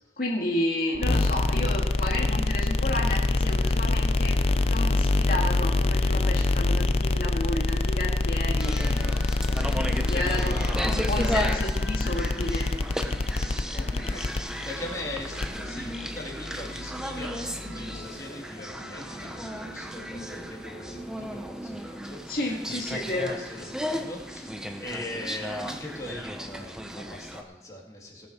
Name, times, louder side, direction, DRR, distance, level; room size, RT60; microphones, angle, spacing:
voice 1, 0.2-9.1 9.4-10.5 10.9-12.7 22.3-23.4, left 1 dB, 55° left, -1 dB, 1.8 m, -31 dB
sound 1, 0.9-18.0, left 2 dB, 35° left, 0.5 m, -26 dB
sound 2, 2.8-21.4, left 1 dB, 75° left, 1.5 m, -48 dB
sound 3, 8.6-27.4, equal, 5° right, 0.8 m, -35 dB
voice 2, 10.1-10.9 11.1-11.6 13.7-22.4 22.7-28.3, left 1 dB, 20° left, -3 dB, 2.4 m, -40 dB
18.5 x 6.5 x 5.9 m, 1.0 s
head